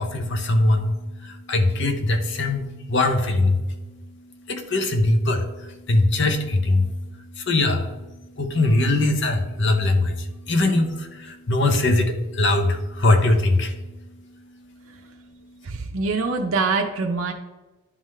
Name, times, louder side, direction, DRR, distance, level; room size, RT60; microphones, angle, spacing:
voice 1, 0.0-3.8 4.2-13.8, left 2 dB, 55° left, 6 dB, 0.7 m, -22 dB
voice 2, 15.6-17.3, right 4 dB, 70° right, 2 dB, 0.6 m, -24 dB
11.0 x 3.7 x 3.1 m, 1.1 s
head